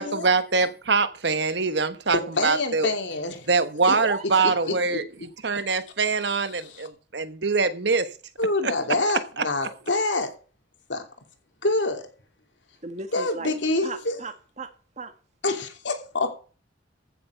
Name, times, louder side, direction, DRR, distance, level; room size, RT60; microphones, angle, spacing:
voice 1, 0.0-2.9 3.5-5.1 5.4-8.1 8.6-8.7 9.4-9.5, right 4 dB, 65° right, 1.2 m, -24 dB
voice 2, 2.4-3.5 3.9-4.0 4.7-5.0 6.5-6.8 8.4-10.3 10.9-11.0 11.6-12.1 13.1-14.2 15.4-16.3, left 2 dB, 70° left, 2.8 m, -26 dB
voice 3, 4.0-4.8 12.8-13.5 13.8-15.1, right 3 dB, 40° right, 1.6 m, -36 dB
15.0 x 7.5 x 5.9 m
head